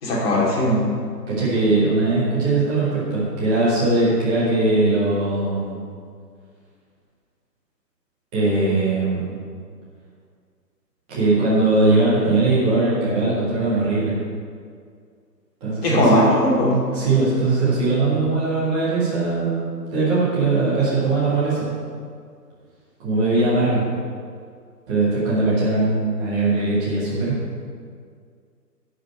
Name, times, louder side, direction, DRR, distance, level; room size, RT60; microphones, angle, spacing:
voice 1, 0.0-0.9 15.8-16.7, left 1 dB, 35° left, -5 dB, 2.9 m, -18 dB
voice 2, 1.3-5.8 8.3-9.4 11.1-14.1 15.6-16.2 16.9-21.8 23.0-23.8 24.9-27.3, right 2 dB, 5° right, -9 dB, 0.6 m, -20 dB
11.0 x 5.0 x 7.6 m, 2.1 s
figure-of-eight pair, 145°, 50 cm